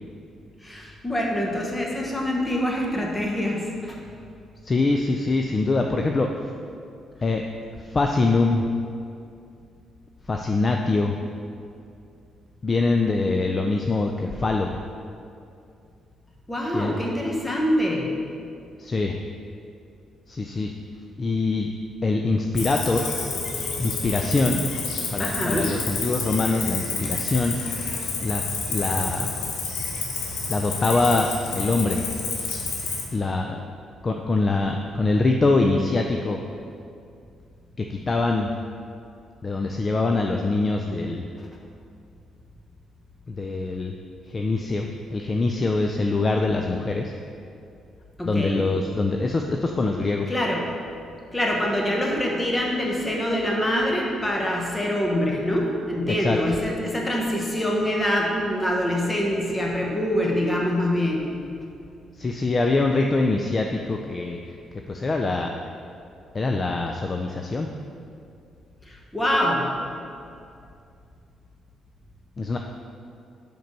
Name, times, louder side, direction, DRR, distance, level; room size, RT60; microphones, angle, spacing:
voice 1, 0.6-4.0 16.5-18.1 25.2-25.7 48.2-48.6 50.3-50.6 51.3-61.3 68.8-69.6, equal, 15° left, -1 dB, 1.2 m, -25 dB
voice 2, 4.6-6.3 7.2-7.4 7.8-8.7 10.3-11.2 12.6-14.8 16.7-17.0 18.8-19.2 20.3-20.7 21.2-21.7 22.0-23.2 23.8-24.7 25.1-27.6 28.2-28.4 28.7-29.4 30.5-32.0 33.1-33.6 34.0-36.4 37.8-38.5 39.4-41.3 43.3-44.0 44.3-47.1 48.2-50.3 56.2-56.4 62.1-64.4 64.7-65.5 66.3-67.7 72.4-72.6, left 3 dB, 35° left, 3 dB, 0.4 m, -24 dB
Cricket, 22.6-33.0, left 4 dB, 90° left, 0.9 m, -29 dB
5.1 x 4.5 x 5.3 m, 2.5 s
cardioid pair, 90°, 0 cm